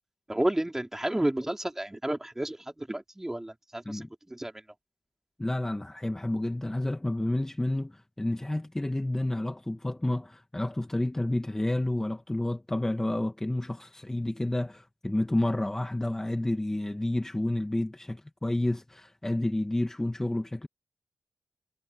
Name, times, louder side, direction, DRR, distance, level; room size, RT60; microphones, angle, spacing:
voice 1, 0.3-4.5, right 1 dB, 15° right, 4.8 m, -31 dB
voice 2, 5.4-20.7, left 1 dB, 20° left, 2.2 m, -30 dB
cardioid pair, 45°, 3 cm